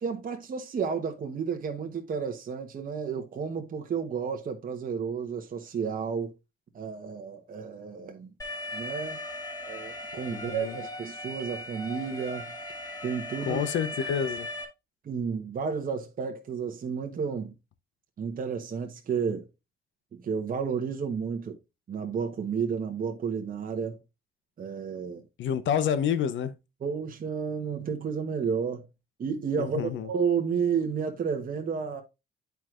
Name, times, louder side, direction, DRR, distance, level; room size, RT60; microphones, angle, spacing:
voice 1, 0.0-6.3 6.7-8.3 8.7-9.2 9.6-12.5 13.0-13.6 15.0-17.5 18.2-19.5 20.2-21.6 21.9-24.0 24.6-25.2 26.8-28.9 29.2-32.0, right 6 dB, 45° right, 1.0 m, -31 dB
Alarm, 8.4-14.6, left 1 dB, 15° left, 1.8 m, -38 dB
voice 2, 10.1-10.8 13.4-14.5 25.4-26.5 29.6-30.1, left 8 dB, 75° left, 0.8 m, -29 dB
9.3 x 4.6 x 2.4 m
cardioid pair, 90°, 20 cm